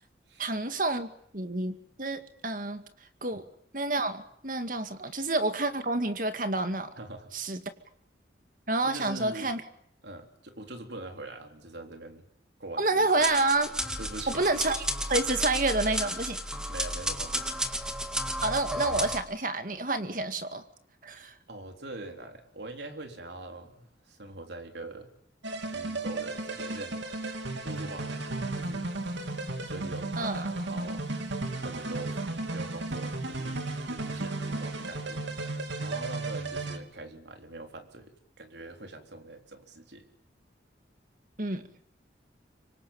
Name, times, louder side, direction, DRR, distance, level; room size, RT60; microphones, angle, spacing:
voice 1, 0.4-2.8 3.2-3.4 3.7-6.9 7.3-7.6 8.7-9.6 12.8-13.7 14.3-16.4 18.4-20.6 21.0-21.3 30.2-30.5 41.4-41.6, right 2 dB, 45° right, 8 dB, 2.2 m, -29 dB
voice 2, 7.0-7.3 8.8-9.5 10.0-12.3 12.6-13.2 14.0-14.5 16.7-17.5 21.5-25.1 25.5-27.0 27.6-28.9 29.7-31.0 31.6-32.2 32.5-35.2 35.8-40.1, right 2 dB, 75° right, 5 dB, 3.8 m, -43 dB
sound 1, 13.2-19.2, equal, 5° right, 2.1 m, -32 dB
sound 2, 25.4-36.8, right 2 dB, 90° right, 2.9 m, -34 dB
25.0 x 25.0 x 8.8 m, 0.67 s
head